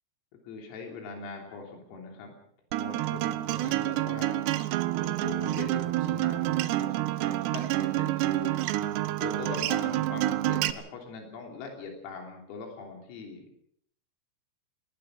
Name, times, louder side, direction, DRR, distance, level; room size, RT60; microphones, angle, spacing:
voice 1, 0.5-2.3 2.8-4.5 5.0-8.6 9.2-13.5, left 4 dB, 85° left, 2 dB, 5.9 m, -41 dB
Acoustic guitar, 2.7-10.7, right 15 dB, 75° right, 2.6 m, -28 dB
20.5 x 20.0 x 6.5 m, 0.68 s
omnidirectional pair, 5.9 m